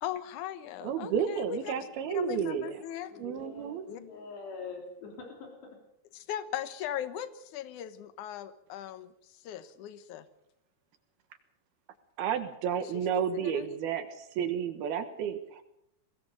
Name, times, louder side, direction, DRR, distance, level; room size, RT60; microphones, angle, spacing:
voice 1, 0.0-3.1 3.9-4.0 6.1-10.3 12.8-13.8, left 11 dB, 65° left, 13 dB, 2.1 m, -39 dB
voice 2, 0.8-2.8 3.2-3.9 12.2-15.6, right 8 dB, 70° right, 9 dB, 3.1 m, -31 dB
voice 3, 2.1-2.4 3.1-5.7, left 4 dB, 85° left, 2 dB, 5.7 m, -44 dB
22.5 x 18.5 x 6.7 m, 0.76 s
omnidirectional pair, 4.8 m